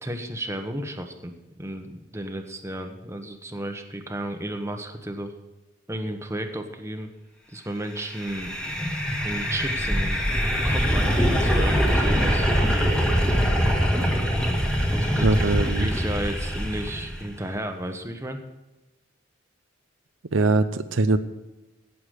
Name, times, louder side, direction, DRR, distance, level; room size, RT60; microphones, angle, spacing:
voice 1, 0.0-1.3 1.6-5.3 5.9-7.1 7.5-8.6 9.2-10.3 10.6-12.5 14.9-18.4, right 1 dB, 15° right, 5 dB, 1.2 m, -33 dB
sound 1, 8.1-17.3, equal, 5° left, 1.8 m, -23 dB
voice 2, 15.2-15.9 20.3-21.2, right 3 dB, 75° right, 10 dB, 0.7 m, -22 dB
17.0 x 7.1 x 6.5 m, 1.0 s
head